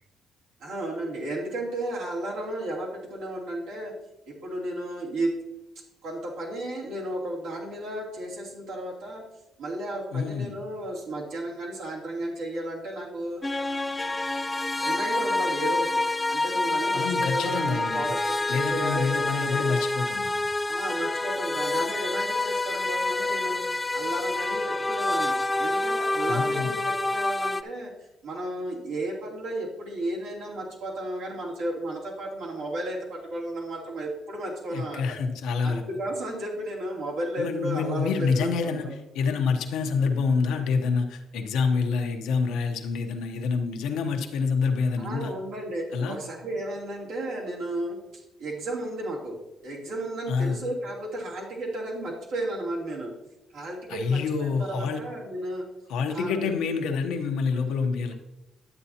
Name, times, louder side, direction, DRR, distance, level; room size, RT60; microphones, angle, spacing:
voice 1, 0.6-3.9 4.3-5.3 6.0-9.2 9.6-13.4 14.8-16.0 16.3-19.7 20.7-23.6 23.9-27.9 28.2-35.2 35.6-38.9 45.0-48.0 48.4-49.4 49.6-53.1 53.5-55.6 56.1-56.5, right 1 dB, 90° right, -4 dB, 2.9 m, -33 dB
voice 2, 10.1-10.5 16.9-18.0 18.5-20.4 26.3-26.7 34.7-35.8 37.4-45.3 45.9-46.2 50.3-50.6 53.9-55.0 55.9-58.1, left 5 dB, 90° left, 5 dB, 0.9 m, -27 dB
sound 1, 13.4-27.6, left 2 dB, 15° left, 0.4 m, -27 dB
11.0 x 8.0 x 2.9 m, 0.93 s
cardioid pair, 100°, 0 cm